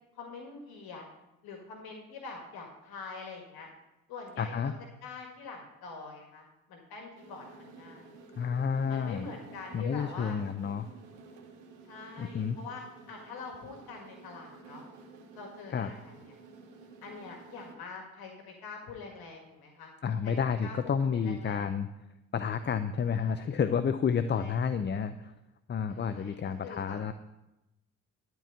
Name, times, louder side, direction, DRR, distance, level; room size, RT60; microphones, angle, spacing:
voice 1, 0.2-1.0 1.4-3.7 4.1-4.7 5.0-8.2 8.9-10.4 11.9-14.8 15.3-16.3 17.0-19.9 20.2-20.3 20.6-21.7 23.1-23.4 24.3-24.6 25.9-27.1, left 4 dB, 65° left, 2 dB, 1.9 m, -45 dB
voice 2, 4.4-4.7 8.3-9.3 9.7-10.9 12.2-12.6 15.7-15.9 20.0-21.9 22.3-25.3 25.7-27.1, left 6 dB, 25° left, 11 dB, 0.6 m, -30 dB
sound 1, 7.2-17.8, right 4 dB, 80° right, 1.5 m, -52 dB
12.0 x 4.7 x 8.4 m, 0.94 s
hypercardioid pair, 50°, 40 cm